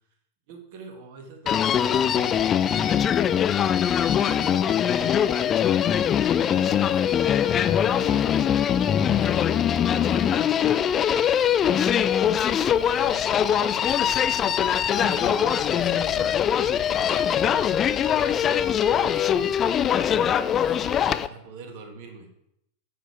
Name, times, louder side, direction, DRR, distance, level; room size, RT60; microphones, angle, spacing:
voice 1, 0.5-3.2 3.8-11.9 12.8-16.3 16.8-18.7 19.0-22.3, right 4 dB, 50° right, 4 dB, 1.5 m, -44 dB
Human voice, 1.5-21.3, left 9 dB, 25° left, 0.3 m, -22 dB
9.7 x 5.1 x 4.6 m, 0.78 s
figure-of-eight pair, 90°, 0 cm